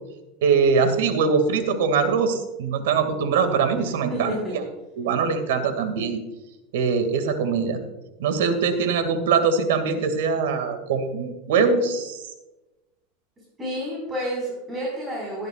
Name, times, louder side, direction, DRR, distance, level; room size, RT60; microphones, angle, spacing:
voice 1, 0.4-4.3 5.0-6.2 6.7-7.8 8.2-12.2, right 5 dB, 90° right, 8 dB, 2.2 m, -22 dB
voice 2, 4.1-4.6 13.6-15.5, equal, 15° right, -5 dB, 5.0 m, -29 dB
17.5 x 12.0 x 2.5 m, 1.0 s
supercardioid pair, 155°, 0 cm